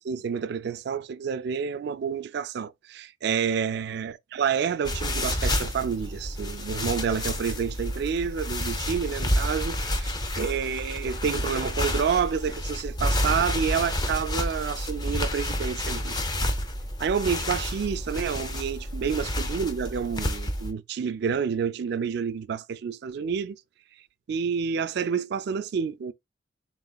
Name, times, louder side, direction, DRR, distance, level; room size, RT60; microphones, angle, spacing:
voice 1, 0.0-16.2 17.0-23.6 24.3-26.1, right 6 dB, 65° right, 0.3 m, -29 dB
sound 1, 4.8-20.7, left 1 dB, 25° left, 0.6 m, -29 dB
3.9 x 3.9 x 2.3 m
head